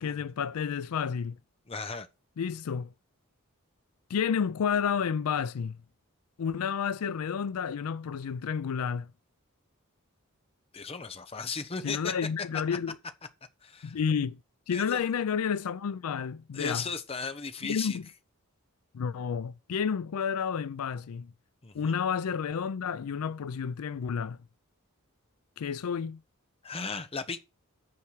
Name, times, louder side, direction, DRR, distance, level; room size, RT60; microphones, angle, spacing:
voice 1, 0.0-1.4 2.4-2.9 4.1-5.8 6.4-9.1 11.8-13.0 13.8-14.4 14.7-16.8 17.6-18.1 18.9-21.3 21.7-24.4 25.6-26.2, left 7 dB, 75° left, 0.4 m, -30 dB
voice 2, 1.7-2.1 10.7-12.1 13.6-14.0 14.7-15.0 16.5-18.0 21.6-22.0 26.6-27.4, left 4 dB, 25° left, 0.8 m, -36 dB
8.6 x 4.6 x 6.3 m
head